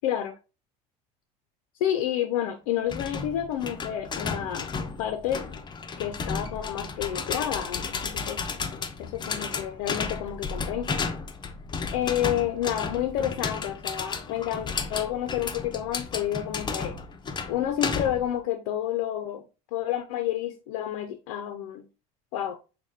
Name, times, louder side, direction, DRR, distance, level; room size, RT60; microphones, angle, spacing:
voice 1, 0.0-0.4 1.8-4.7 5.0-5.5 6.0-8.4 9.0-11.0 11.9-16.9 17.5-19.4 19.7-21.8 22.3-22.6, left 11 dB, 80° left, 0.4 m, -29 dB
sound 1, 2.9-18.3, left 5 dB, 25° left, 0.5 m, -33 dB
6.3 x 2.2 x 2.7 m
supercardioid pair, 90°, 17 cm